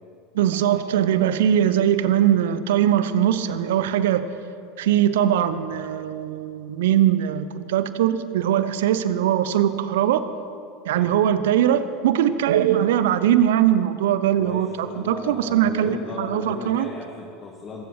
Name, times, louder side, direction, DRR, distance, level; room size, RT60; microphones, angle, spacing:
voice 1, 0.3-4.2 4.8-10.2 10.9-16.9, right 10 dB, 65° right, 13 dB, 0.8 m, -21 dB
voice 2, 14.4-17.9, left 3 dB, 30° left, -1 dB, 1.8 m, -36 dB
22.0 x 14.5 x 3.3 m, 2.5 s
figure-of-eight pair, 75°, 0 cm